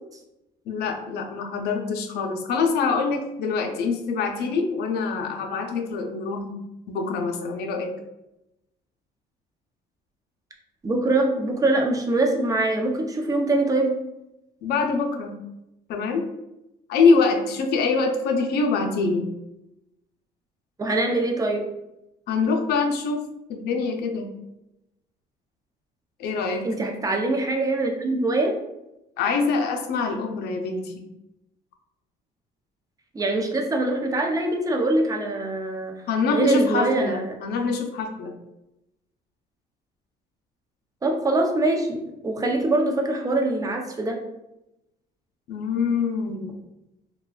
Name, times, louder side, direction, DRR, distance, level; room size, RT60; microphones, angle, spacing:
voice 1, 0.7-6.6 6.9-7.9 14.6-15.4 15.9-16.2 16.9-19.3 22.3-23.2 23.5-24.3 26.2-26.7 29.2-31.0 36.1-38.3 45.5-46.5, left 4 dB, 75° left, 4 dB, 0.6 m, -24 dB
voice 2, 10.8-13.9 20.8-21.6 26.6-28.5 33.1-35.9 36.3-37.3 41.0-44.2, right 2 dB, 20° right, 2 dB, 0.6 m, -23 dB
3.9 x 2.2 x 2.3 m, 0.90 s
cardioid pair, 110°, 17 cm